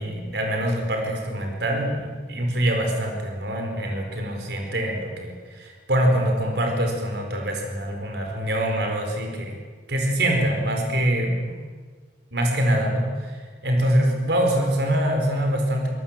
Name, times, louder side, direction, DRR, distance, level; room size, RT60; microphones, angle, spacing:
voice 1, 0.0-9.6 9.9-11.6 12.3-15.9, right 1 dB, 65° right, 2 dB, 4.6 m, -24 dB
26.0 x 19.5 x 7.5 m, 1.5 s
head